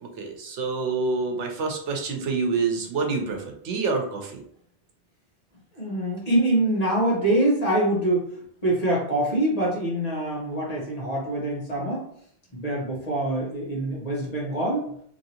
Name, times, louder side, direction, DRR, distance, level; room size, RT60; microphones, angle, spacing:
voice 1, 0.0-4.4, right 4 dB, 85° right, 3 dB, 1.0 m, -27 dB
voice 2, 5.7-12.1 12.5-14.9, right 1 dB, 35° left, -4 dB, 1.1 m, -25 dB
3.0 x 2.7 x 2.8 m, 0.65 s
omnidirectional pair, 1.2 m